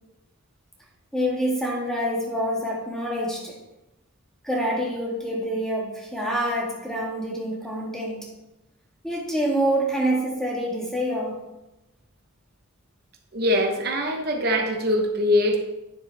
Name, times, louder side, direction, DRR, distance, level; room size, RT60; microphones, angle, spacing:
voice 1, 1.1-3.6 4.4-8.3 9.0-11.4, equal, 5° left, -2 dB, 1.5 m, -26 dB
voice 2, 13.3-15.6, left 1 dB, 50° right, 3 dB, 0.9 m, -22 dB
9.9 x 6.8 x 3.3 m, 0.98 s
head